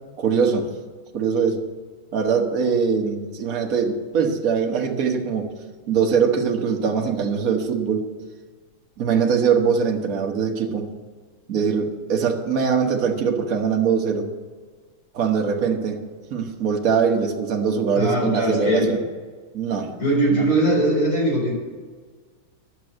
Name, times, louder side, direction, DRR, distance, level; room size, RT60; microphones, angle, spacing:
voice 1, 0.2-0.7 1.1-1.6 2.1-5.5 5.9-8.1 9.0-10.9 11.5-14.3 15.1-16.0 16.3-19.0 19.5-20.0 20.3-20.4, right 6 dB, 50° right, 2 dB, 1.5 m, -22 dB
voice 2, 17.9-18.9 20.0-21.5, right 1 dB, 50° left, -4 dB, 5.1 m, -20 dB
11.0 x 7.5 x 7.7 m, 1.5 s
omnidirectional pair, 2.2 m